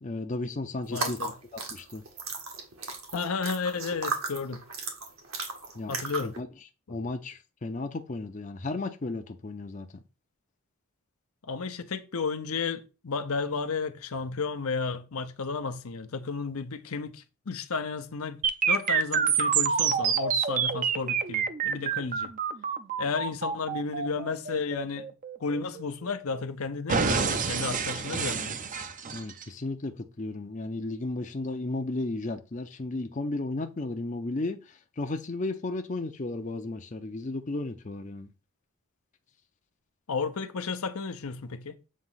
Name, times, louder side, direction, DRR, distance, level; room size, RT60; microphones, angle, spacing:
voice 1, 0.0-2.0 5.7-5.9 6.2-6.5 6.9-9.9 29.1-38.3, left 2 dB, 35° left, 0.5 m, -34 dB
voice 2, 0.9-1.3 3.1-4.6 5.9-6.3 6.9-7.0 11.4-18.4 18.7-22.3 23.0-25.1 25.4-28.6 40.1-41.8, left 4 dB, 80° left, 0.7 m, -33 dB
sound 1, 0.9-6.4, right 4 dB, 70° right, 1.6 m, -35 dB
sound 2, 18.4-26.4 26.9-29.4, right 6 dB, 35° right, 0.5 m, -28 dB
7.4 x 2.9 x 5.7 m
head